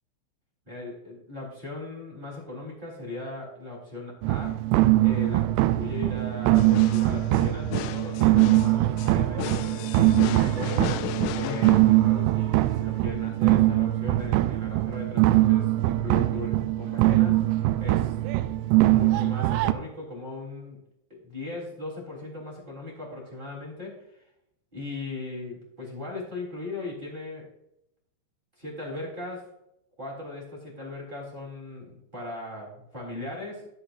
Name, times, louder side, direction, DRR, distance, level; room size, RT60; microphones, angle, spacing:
voice 1, 0.7-4.6 5.0-10.9 11.3-18.1 18.8-20.8 21.1-24.0 24.7-27.5 28.6-29.5 30.0-33.7, left 2 dB, 10° right, -3 dB, 3.1 m, -38 dB
sound 1, 4.2-19.7, right 16 dB, 85° right, 2.8 m, -22 dB
sound 2, 6.6-12.4, left 12 dB, 85° left, 2.5 m, -35 dB
14.5 x 9.6 x 2.6 m, 0.79 s
omnidirectional pair, 5.4 m